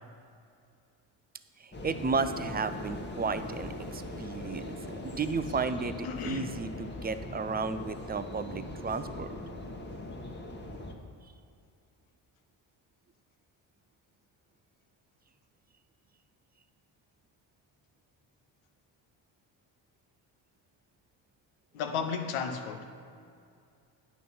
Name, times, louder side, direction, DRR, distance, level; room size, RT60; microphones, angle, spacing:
voice 1, 1.6-9.3, right 4 dB, 20° right, 0.5 m, -33 dB
sound 1, 1.7-10.9, left 1 dB, 20° left, 1.2 m, -41 dB
voice 2, 6.0-6.6 21.7-22.9, left 6 dB, 85° left, 0.8 m, -34 dB
9.3 x 6.3 x 5.5 m
supercardioid pair, 70°, 48 cm